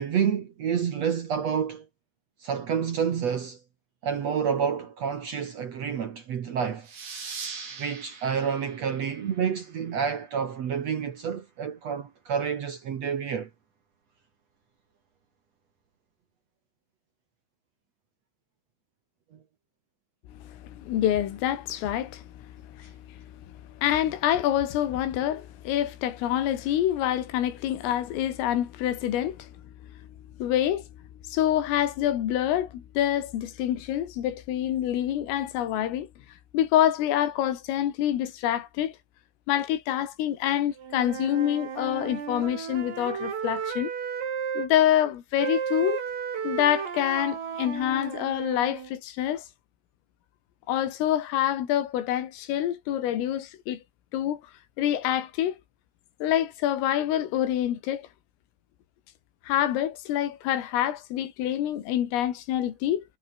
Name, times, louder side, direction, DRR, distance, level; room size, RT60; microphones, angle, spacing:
voice 1, 0.0-1.8 2.4-3.6 4.0-6.9 7.8-13.5, right 7 dB, 70° right, 1.5 m, -29 dB
sound 1, 6.8-10.1, right 5 dB, 40° right, 6.0 m, -41 dB
voice 2, 20.4-22.2 22.7-23.2 23.8-29.5 30.4-30.8 31.2-36.1 36.5-38.9 39.5-43.9 44.5-46.0 46.4-49.5 50.7-53.8 54.1-54.4 54.8-55.6 56.2-58.1 59.4-63.0, left 11 dB, 85° left, 5.1 m, -26 dB
Wind instrument woodwind instrument, 40.8-44.7 45.4-48.9, right 7 dB, 90° right, 7.5 m, -33 dB
omnidirectional pair, 5.7 m